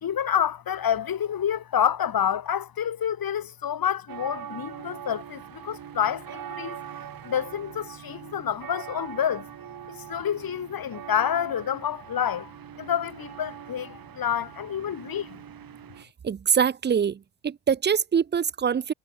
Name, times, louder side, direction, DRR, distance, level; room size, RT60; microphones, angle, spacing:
voice 1, 0.0-6.8 7.2-9.5 9.9-12.5 12.8-15.4, left 9 dB, 45° left, 3.3 m, -28 dB
sound 1, 4.1-16.0, right 9 dB, 45° right, 2.7 m, -42 dB
voice 2, 16.2-18.9, right 7 dB, 20° right, 0.6 m, -24 dB
figure-of-eight pair, 45°, 48 cm